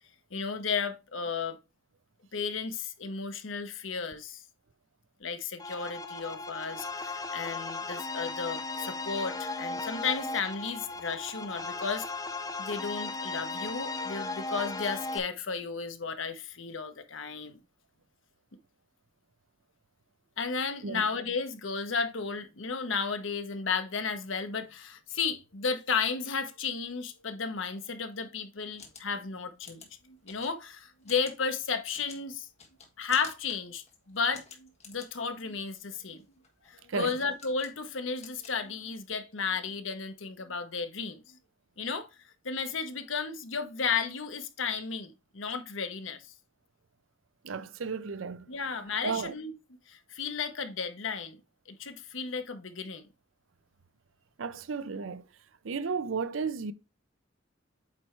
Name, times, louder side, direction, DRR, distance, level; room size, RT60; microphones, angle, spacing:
voice 1, 0.3-1.6 2.3-4.4 5.2-12.1 12.6-17.6 20.4-32.5 33.0-36.2 36.7-41.4 41.8-42.1 42.4-46.3 48.5-49.5 49.9-51.4 51.7-53.1, left 5 dB, 85° left, 1.0 m, -34 dB
sound 1, 5.6-15.2, left 3 dB, 20° left, 0.6 m, -36 dB
sound 2, 28.5-39.2, left 5 dB, 35° left, 1.6 m, -53 dB
voice 2, 47.4-48.5 49.0-49.3 54.4-55.2 55.6-56.7, right 5 dB, 85° right, 0.6 m, -33 dB
8.6 x 3.2 x 4.4 m
head